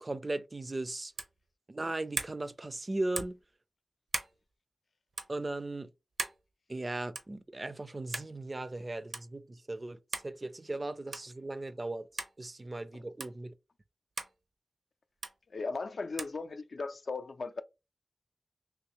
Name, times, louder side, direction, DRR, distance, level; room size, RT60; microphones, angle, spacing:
voice 1, 0.0-1.1 1.7-3.4 5.3-5.9 6.7-12.1 12.4-13.5, right 2 dB, 35° right, 0.4 m, -37 dB
sound 1, 1.1-1.4 2.1-2.4 3.1-3.4 4.1-4.3 5.1-5.3 6.2-6.4 7.1-7.4 8.1-8.3 9.1-9.2 10.1-10.3 11.1-11.3 12.2-12.3 13.2-13.3 14.2-14.3 15.2-15.3 16.2-16.4, right 3 dB, 70° right, 0.7 m, -37 dB
voice 2, 15.5-17.6, left 3 dB, 65° left, 0.4 m, -37 dB
3.4 x 3.0 x 2.9 m
wide cardioid pair, 75°, 0 cm